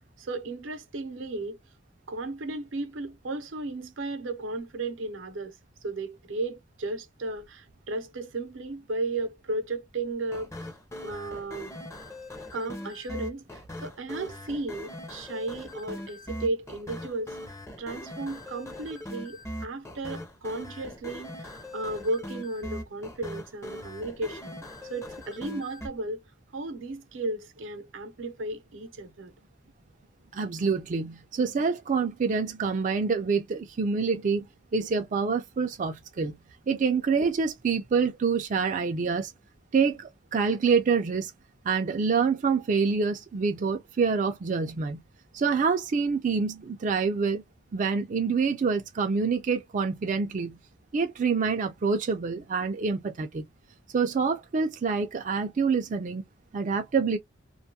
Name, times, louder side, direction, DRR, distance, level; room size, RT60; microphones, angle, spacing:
voice 1, 0.2-1.6 2.1-5.6 5.8-10.5 11.0-11.7 12.5-17.4 17.8-24.6 24.9-26.2 26.5-29.3, right 2 dB, 85° right, 0.7 m, -34 dB
sound 1, 10.3-25.9, left 1 dB, 15° left, 0.6 m, -40 dB
voice 2, 30.3-34.5 34.7-36.4 36.7-39.3 39.7-41.3 41.6-45.0 45.3-47.4 47.7-50.6 50.9-53.4 53.9-56.2 56.5-57.2, right 5 dB, 40° right, 0.4 m, -26 dB
2.5 x 2.3 x 2.7 m
head